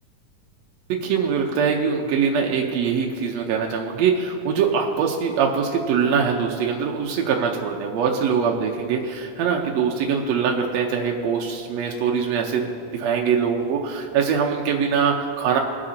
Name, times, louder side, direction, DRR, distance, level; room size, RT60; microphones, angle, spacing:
voice 1, 0.9-15.6, right 6 dB, 75° right, 0 dB, 1.7 m, -23 dB
22.0 x 7.9 x 2.8 m, 2.4 s
omnidirectional pair, 3.6 m